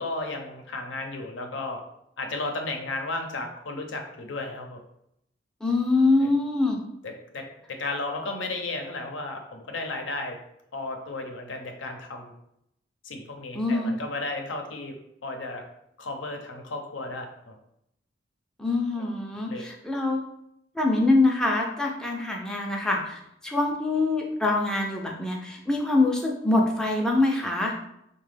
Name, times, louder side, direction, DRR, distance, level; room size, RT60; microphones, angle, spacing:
voice 1, 0.0-1.8 2.2-4.8 6.2-6.3 7.0-10.4 10.7-12.3 13.0-14.9 15.2-15.6 16.0-17.5 19.0-19.1 19.5-19.7, left 2 dB, 85° left, 4 dB, 0.6 m, -34 dB
voice 2, 5.6-6.8 13.5-13.9 18.6-20.2 20.8-27.7, left 2 dB, 5° left, -1 dB, 0.4 m, -24 dB
4.0 x 2.2 x 3.2 m, 0.77 s
head